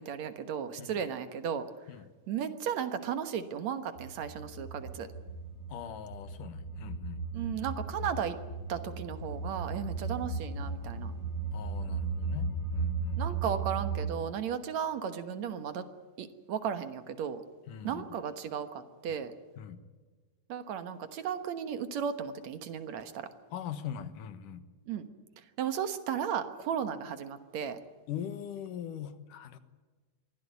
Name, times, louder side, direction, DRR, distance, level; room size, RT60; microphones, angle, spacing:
voice 1, 0.0-1.7 2.3-5.1 7.3-8.4 8.7-11.1 13.2-15.9 16.2-17.4 17.8-19.3 20.5-23.3 24.9-25.1 25.6-27.8, right 8 dB, 65° right, 10 dB, 2.4 m, -35 dB
sound 1, 4.0-14.1, right 4 dB, 30° left, 2.6 m, -36 dB
voice 2, 5.7-7.2 11.5-13.4 17.7-18.0 19.6-19.8 23.5-24.6 28.1-29.6, left 9 dB, 85° left, 11 dB, 2.9 m, -41 dB
23.5 x 15.5 x 9.5 m, 1.3 s
omnidirectional pair, 3.6 m